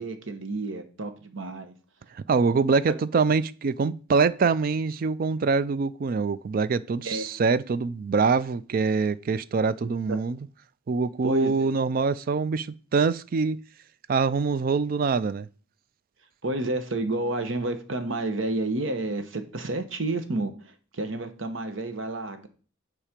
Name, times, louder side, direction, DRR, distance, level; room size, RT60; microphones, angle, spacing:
voice 1, 0.0-1.7 2.9-3.0 7.0-7.3 9.8-10.2 11.2-11.7 16.4-22.5, right 2 dB, 75° right, 1.0 m, -30 dB
voice 2, 2.2-10.4 10.9-13.6 14.1-15.5, right 4 dB, 45° right, 0.4 m, -24 dB
7.3 x 5.0 x 5.1 m
head